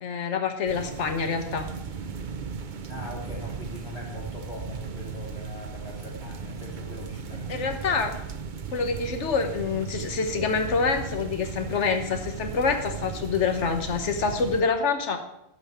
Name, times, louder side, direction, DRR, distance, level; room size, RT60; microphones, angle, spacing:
voice 1, 0.0-1.7 7.5-8.1 8.7-15.2, left 5 dB, 85° left, 6 dB, 1.4 m, -26 dB
sound 1, 0.7-14.6, right 5 dB, 50° right, 0.8 m, -36 dB
voice 2, 2.9-7.9, left 1 dB, 70° left, -2 dB, 3.7 m, -41 dB
12.5 x 5.3 x 8.6 m, 0.82 s
omnidirectional pair, 1.2 m